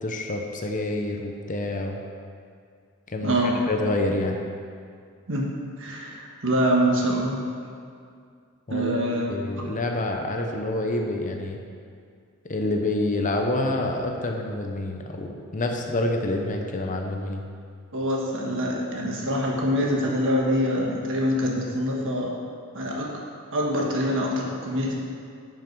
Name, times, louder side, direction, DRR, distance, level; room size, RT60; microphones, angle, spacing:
voice 1, 0.0-2.0 3.1-4.4 8.7-9.0 9.3-11.6 12.4-17.4, left 2 dB, 35° left, 2 dB, 0.8 m, -27 dB
voice 2, 3.2-3.6 5.3-5.5 5.8-7.4 8.7-9.2 9.5-9.6 17.9-22.3 22.7-23.1 23.5-25.0, equal, 60° right, -1 dB, 1.5 m, -25 dB
10.0 x 5.7 x 4.7 m, 2.3 s
head